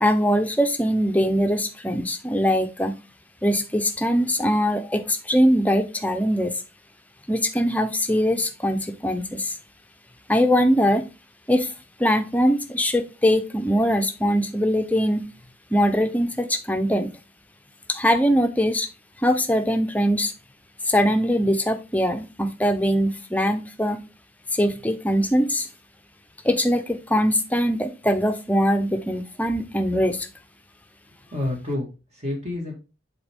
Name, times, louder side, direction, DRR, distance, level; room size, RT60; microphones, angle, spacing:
voice 1, 0.0-3.0 3.4-6.5 7.3-9.5 10.3-11.1 11.5-11.7 12.0-15.2 15.7-17.1 17.9-18.9 19.2-20.3 20.9-24.0 24.5-25.7 26.4-30.3, equal, 10° left, 7 dB, 0.6 m, -22 dB
voice 2, 31.3-32.7, left 1 dB, 40° right, 0 dB, 1.8 m, -29 dB
7.6 x 4.2 x 3.6 m, 0.30 s
head